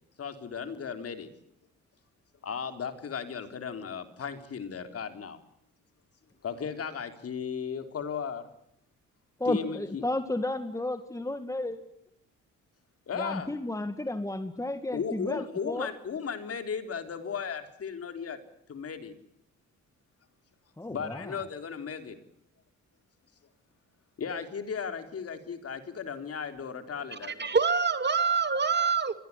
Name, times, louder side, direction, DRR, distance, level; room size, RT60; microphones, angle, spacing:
voice 1, 0.2-1.3 2.4-5.4 6.4-8.4 9.4-10.0 13.1-13.5 14.9-18.4 18.7-19.2 20.9-22.2 24.2-27.5, left 6 dB, 50° left, 7 dB, 3.7 m, -36 dB
voice 2, 9.4-11.8 13.2-15.9 20.8-21.3, left 2 dB, 10° left, 9 dB, 1.9 m, -32 dB
voice 3, 27.1-29.1, right 5 dB, 35° right, 10 dB, 2.4 m, -26 dB
25.0 x 19.5 x 9.8 m, 0.75 s
cardioid pair, 90°, 30 cm